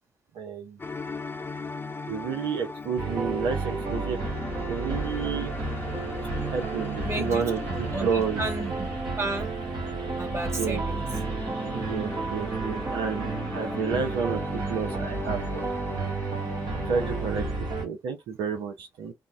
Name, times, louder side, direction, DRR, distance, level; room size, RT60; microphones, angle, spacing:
voice 1, 0.3-0.8 2.1-4.2 4.7-5.5 6.5-7.6 8.0-8.4 10.6-10.8 11.7-14.4 14.7-15.6 16.8-17.5 17.8-19.1, right 6 dB, 75° right, 0.7 m, -30 dB
sound 1, 0.8-17.3, left 3 dB, 25° left, 0.8 m, -38 dB
sound 2, 3.0-17.9, right 4 dB, 60° right, 1.8 m, -32 dB
voice 2, 7.0-7.4 7.7-8.9 9.2-9.7 10.2-11.1, right 2 dB, 30° right, 1.8 m, -33 dB
3.7 x 2.2 x 3.6 m
hypercardioid pair, 45°, 9 cm